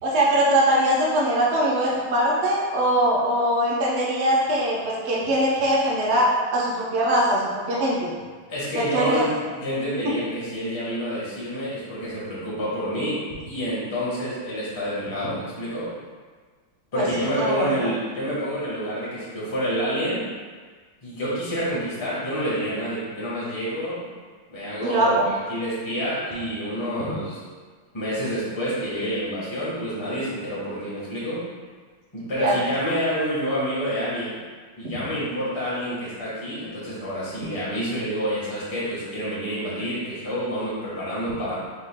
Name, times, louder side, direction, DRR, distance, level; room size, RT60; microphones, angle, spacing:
voice 1, 0.0-8.1 8.8-9.3 16.9-17.0 17.4-17.7 24.8-25.2 32.4-32.6 34.8-34.9, right 1 dB, 50° right, -5 dB, 0.8 m, -22 dB
voice 2, 8.5-15.9 16.9-20.2 21.0-24.1 24.5-27.4 27.9-31.4 32.1-34.4 34.8-41.6, equal, 15° left, -9 dB, 1.1 m, -28 dB
6.3 x 3.1 x 2.2 m, 1.5 s
omnidirectional pair, 2.3 m